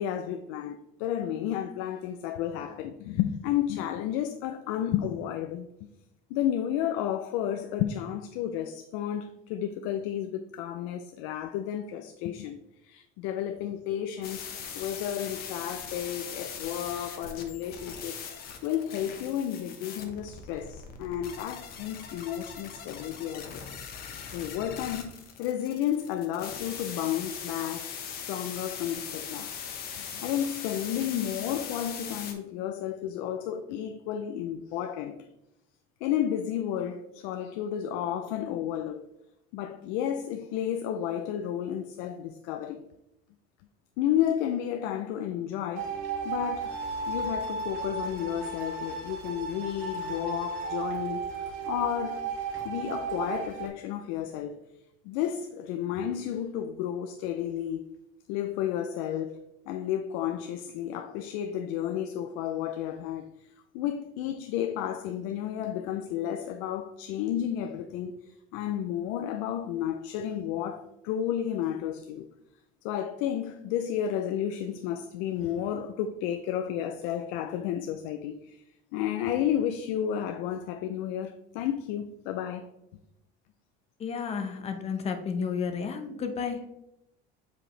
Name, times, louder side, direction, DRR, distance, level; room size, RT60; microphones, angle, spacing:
voice 1, 0.0-5.7 6.3-18.2 18.6-23.7 24.3-29.6 29.9-35.3 36.0-39.1 39.5-42.8 44.0-46.0 46.2-46.8 47.1-52.3 52.6-54.6 55.0-57.8 58.3-72.3 72.8-78.6 78.9-82.7, left 10 dB, 85° left, 0.5 m, -32 dB
sound 1, 14.2-32.3, left 7 dB, 50° left, 1.1 m, -40 dB
sound 2, 45.8-53.7, right 4 dB, 65° right, 2.4 m, -34 dB
voice 2, 84.0-86.6, left 6 dB, 30° left, 0.8 m, -32 dB
7.6 x 4.9 x 3.2 m
cardioid pair, 155°, 21 cm